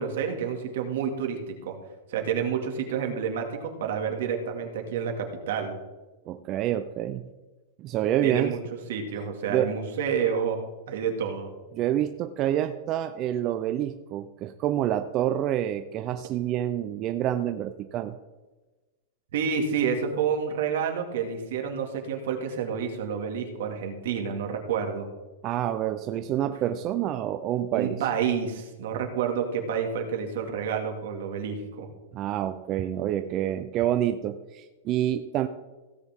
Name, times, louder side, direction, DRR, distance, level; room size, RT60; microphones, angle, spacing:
voice 1, 0.0-1.8 2.1-5.8 8.2-8.6 8.9-10.6 10.9-11.5 19.3-25.1 27.7-31.9, right 7 dB, 65° right, 3 dB, 2.1 m, -29 dB
voice 2, 6.3-7.3 7.8-8.6 9.5-9.7 11.7-18.2 25.4-28.0 32.1-35.5, right 11 dB, 25° right, 9 dB, 0.4 m, -27 dB
16.5 x 8.1 x 3.6 m, 1.2 s
supercardioid pair, 175°, 0 cm